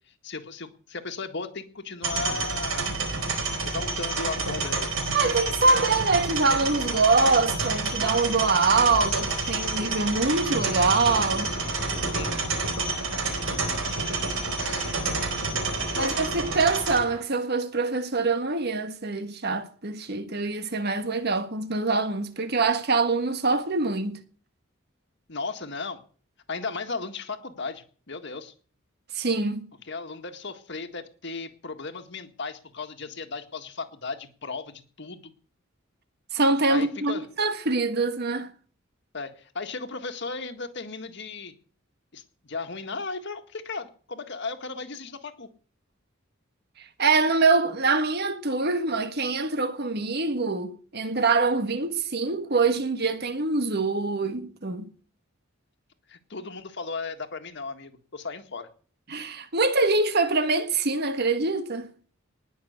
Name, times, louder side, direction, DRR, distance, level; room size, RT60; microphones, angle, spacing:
voice 1, 0.2-2.9 3.6-4.9 12.1-12.4 14.6-15.5 15.9-16.1 25.3-26.0 26.5-28.5 29.9-35.3 36.7-37.3 39.1-41.5 42.1-45.5 56.1-58.7, left 4 dB, 60° left, 1.8 m, -36 dB
sound 1, 2.0-17.0, right 3 dB, 85° right, 4.5 m, -29 dB
voice 2, 5.1-11.5 15.9-24.2 29.1-29.7 36.3-38.5 47.0-54.9 59.1-61.9, right 3 dB, 50° right, 1.5 m, -24 dB
sound 2, 8.5-17.2, right 1 dB, 35° right, 7.4 m, -42 dB
19.5 x 6.6 x 8.1 m
head